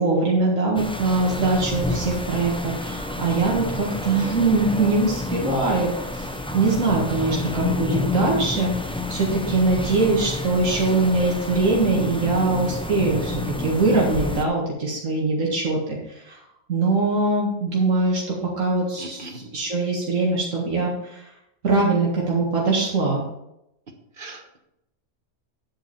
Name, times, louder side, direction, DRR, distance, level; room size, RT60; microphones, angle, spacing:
voice 1, 0.0-16.4 16.7-21.3 21.6-23.2, right 3 dB, 90° right, -3 dB, 2.2 m, -22 dB
sound 1, 0.8-14.5, left 2 dB, 5° left, 0.5 m, -29 dB
voice 2, 19.0-19.4 24.2-24.6, right 2 dB, 45° right, 4 dB, 1.4 m, -39 dB
10.0 x 8.1 x 4.4 m, 0.83 s
omnidirectional pair, 1.3 m